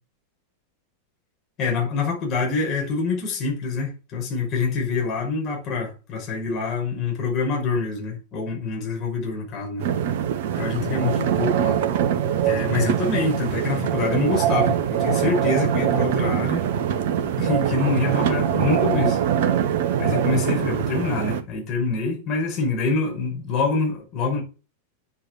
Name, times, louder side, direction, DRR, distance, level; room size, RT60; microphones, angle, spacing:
voice 1, 1.6-9.8 10.6-11.8 12.4-16.7 17.4-19.2 20.0-24.4, left 4 dB, 35° left, 5.9 m, -25 dB
sound 1, 9.8-21.4, right 9 dB, 50° right, 1.3 m, -23 dB
8.6 x 7.5 x 7.7 m
figure-of-eight pair, 90°, 0 cm